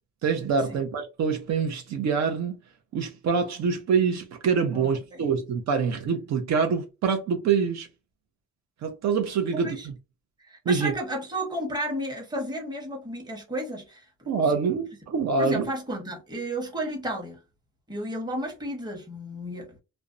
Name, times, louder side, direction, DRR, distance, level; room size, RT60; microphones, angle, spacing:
voice 1, 0.2-2.6 2.9-7.9 8.8-9.9 10.7-10.9 14.3-15.7, right 5 dB, 60° right, 0.6 m, -25 dB
voice 2, 4.7-5.2 9.5-9.9 10.5-14.0 14.5-14.6 15.4-17.4 17.9-19.8, right 1 dB, 15° right, 1.0 m, -33 dB
2.5 x 2.1 x 2.4 m
cardioid pair, 90°, 30 cm